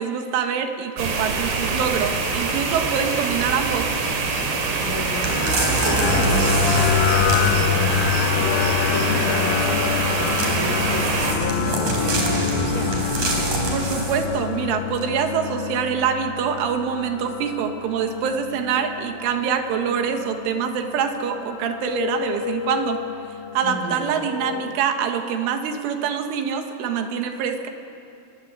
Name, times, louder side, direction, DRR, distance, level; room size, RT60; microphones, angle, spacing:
voice 1, 0.0-3.9 13.7-23.0 23.6-27.7, right 7 dB, 80° right, 5 dB, 4.0 m, -25 dB
sound 1, 1.0-11.3, right 4 dB, 65° right, 4.7 m, -24 dB
voice 2, 4.8-13.1 23.6-24.1, left 1 dB, 25° left, -2 dB, 2.1 m, -32 dB
sound 2, 5.1-24.8, left 11 dB, 90° left, 3.5 m, -27 dB
sound 3, 5.2-8.2 10.2-14.4 15.0-15.1, right 2 dB, 45° right, 5.1 m, -25 dB
25.5 x 22.5 x 8.1 m, 2.6 s
omnidirectional pair, 5.5 m